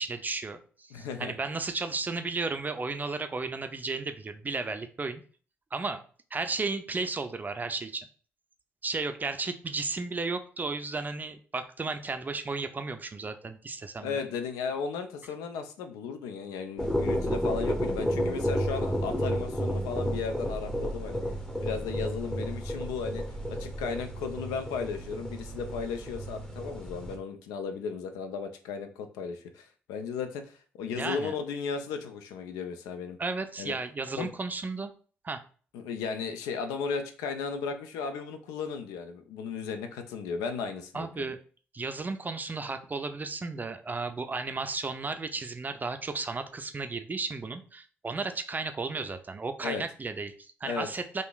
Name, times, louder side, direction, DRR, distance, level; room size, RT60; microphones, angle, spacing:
voice 1, 0.0-5.2 5.7-6.0 6.3-8.1 8.8-14.2 31.0-31.3 33.2-34.9 35.2-35.4 40.9-41.4 41.7-51.2, right 3 dB, 30° right, 8 dB, 0.4 m, -34 dB
voice 2, 0.9-1.4 14.0-21.2 21.6-33.2 33.6-33.7 34.2-34.3 35.7-41.3 49.6-49.8 50.6-50.9, left 5 dB, 75° left, 7 dB, 0.3 m, -35 dB
sound 1, 16.8-27.2, equal, 10° left, 0.7 m, -32 dB
3.6 x 2.5 x 2.3 m, 0.41 s
hypercardioid pair, 45°, 6 cm